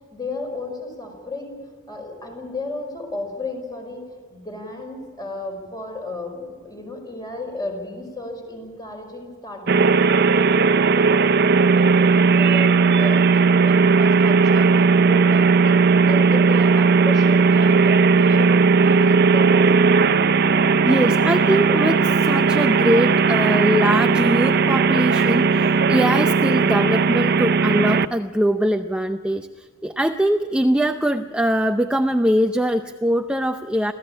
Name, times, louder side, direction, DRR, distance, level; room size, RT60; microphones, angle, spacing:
voice 1, 0.1-1.6 1.9-11.9 12.3-15.7 16.0-19.7, left 2 dB, 20° left, 3 dB, 5.3 m, -34 dB
sound 1, 9.7-28.1, right 4 dB, 50° right, 0.6 m, -17 dB
voice 2, 20.9-29.5 29.8-33.9, equal, 5° right, 6 dB, 0.6 m, -22 dB
25.5 x 15.5 x 8.7 m, 1.5 s
head